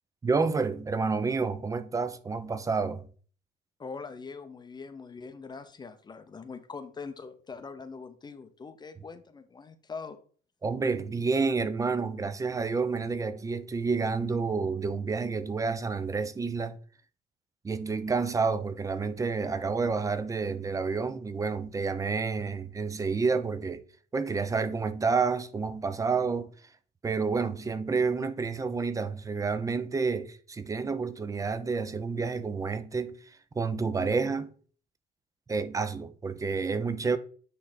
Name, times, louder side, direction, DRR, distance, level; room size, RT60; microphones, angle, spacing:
voice 1, 0.2-3.1 10.6-16.8 17.6-23.8 24.1-26.5 27.0-33.2 33.5-34.5 35.5-37.2, right 4 dB, 20° right, 0.6 m, -29 dB
voice 2, 3.8-10.2, left 4 dB, 25° left, 0.7 m, -42 dB
8.6 x 3.3 x 3.9 m
cardioid pair, 110°, 17 cm